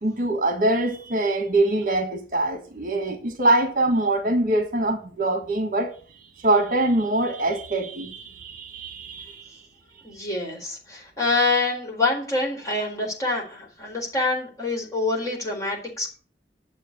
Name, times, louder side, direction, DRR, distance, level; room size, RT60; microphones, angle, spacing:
voice 1, 0.0-5.9 6.4-9.6, right 2 dB, 50° right, 1.5 m, -23 dB
voice 2, 10.0-16.2, left 3 dB, 20° left, 4.1 m, -26 dB
10.5 x 7.4 x 8.3 m
head